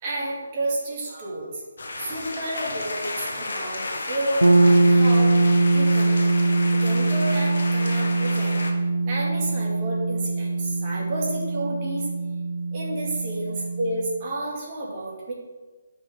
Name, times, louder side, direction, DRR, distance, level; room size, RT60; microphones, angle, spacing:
voice 1, 0.0-5.3 5.7-6.2 6.7-8.7 9.0-12.1 12.7-15.3, right 1 dB, 30° right, -5 dB, 2.5 m, -31 dB
sound 1, 1.8-8.7, left 2 dB, 55° left, 1.4 m, -33 dB
sound 2, 4.4-14.2, right 2 dB, 80° right, 0.8 m, -22 dB
13.0 x 5.5 x 3.7 m, 1.2 s
figure-of-eight pair, 145°, 0 cm